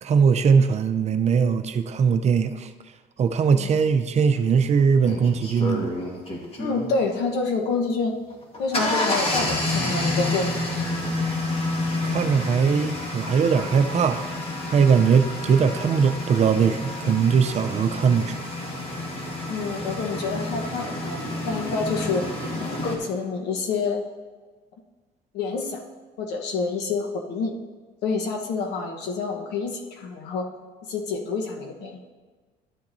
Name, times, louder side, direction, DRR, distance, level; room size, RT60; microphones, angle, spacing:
voice 1, 0.0-2.7 3.2-5.9 12.0-14.2 14.7-18.3, right 6 dB, 40° right, 9 dB, 0.6 m, -20 dB
sound 1, 4.4-4.5 5.0-6.9 8.3-23.0, left 2 dB, 35° left, 1.6 m, -29 dB
voice 2, 6.6-8.1 8.6-10.6 19.5-21.2 21.4-22.3 22.6-24.0 25.3-25.8 26.2-27.5 28.0-30.5 30.9-32.0, left 4 dB, 80° left, 2 dB, 1.1 m, -27 dB
12.0 x 7.2 x 2.7 m, 1.4 s
cardioid pair, 110°, 17 cm